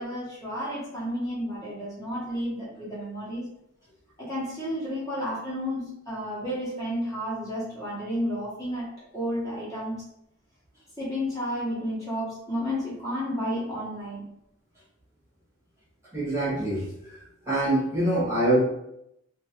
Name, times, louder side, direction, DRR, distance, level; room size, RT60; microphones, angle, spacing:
voice 1, 0.0-3.5 4.2-10.0 11.0-14.2, equal, 15° left, -10 dB, 1.1 m, -31 dB
voice 2, 16.1-18.6, right 1 dB, 15° right, -10 dB, 1.1 m, -25 dB
2.9 x 2.6 x 2.9 m, 0.80 s
head